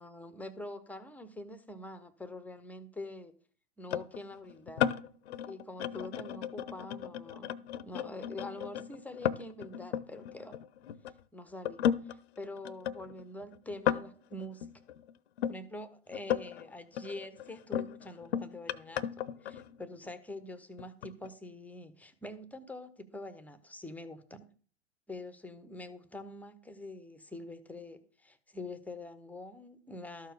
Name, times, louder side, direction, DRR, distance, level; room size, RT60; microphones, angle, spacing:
voice 1, 0.0-3.3 3.8-4.9 5.5-10.6 11.3-14.7 15.5-24.5 25.1-30.3, left 1 dB, 5° left, 13 dB, 0.8 m, -45 dB
sound 1, 3.9-11.1 11.7-15.6 16.1-16.7 17.0-20.1 20.8-21.3, left 9 dB, 65° left, 0.8 m, -35 dB
13.0 x 4.7 x 6.6 m, 0.43 s
hypercardioid pair, 115°, 34 cm